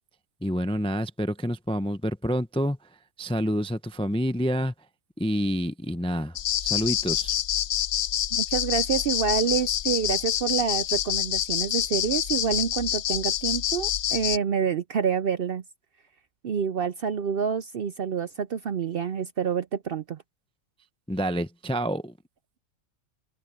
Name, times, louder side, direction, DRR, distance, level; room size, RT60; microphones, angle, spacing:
voice 1, 0.4-2.8 3.2-4.7 5.2-6.4 6.6-7.3 21.1-22.1, equal, 10° left, 0.4 m, -28 dB
sound 1, 6.4-14.4, left 11 dB, 65° left, 0.6 m, -27 dB
voice 2, 8.3-15.6 16.4-20.2, right 7 dB, 55° right, 0.7 m, -27 dB
omnidirectional pair, 1.4 m